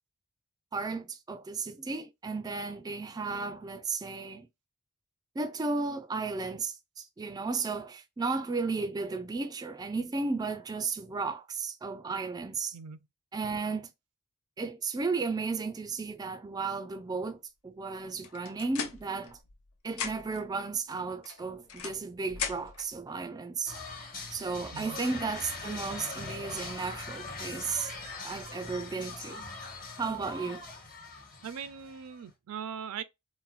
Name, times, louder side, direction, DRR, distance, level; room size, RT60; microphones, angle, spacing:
voice 1, 0.7-4.5 5.4-12.8 13.3-13.9 14.6-19.4 19.8-23.8 24.3-27.9 28.2-29.4 30.0-30.6, right 4 dB, 15° right, 0.3 m, -34 dB
sound 1, 18.2-19.6 19.9-20.5 21.2-22.9, left 6 dB, 70° left, 0.7 m, -38 dB
sound 2, 23.6-32.2, left 3 dB, 40° left, 1.2 m, -42 dB
voice 2, 31.4-33.0, right 7 dB, 85° right, 0.4 m, -40 dB
4.1 x 2.0 x 2.4 m
head